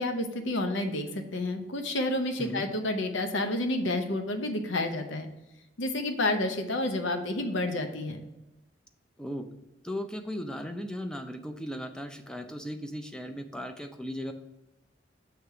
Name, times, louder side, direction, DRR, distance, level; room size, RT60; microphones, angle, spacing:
voice 1, 0.0-5.3 5.8-8.3, left 2 dB, 75° left, 6 dB, 0.8 m, -30 dB
voice 2, 9.2-9.5 9.8-14.3, equal, 5° left, 6 dB, 0.5 m, -37 dB
6.5 x 3.4 x 5.6 m, 1.0 s
head